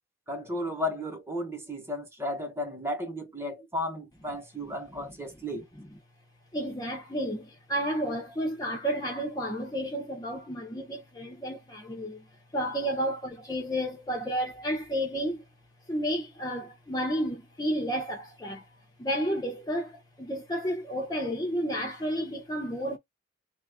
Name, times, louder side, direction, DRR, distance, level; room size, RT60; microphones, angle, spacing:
voice 1, 0.3-5.7, left 1 dB, 10° right, 0.9 m, -34 dB
voice 2, 6.5-12.2 12.5-15.4 15.9-18.6 19.0-23.0, equal, 20° left, 0.6 m, -31 dB
2.9 x 2.4 x 3.4 m
head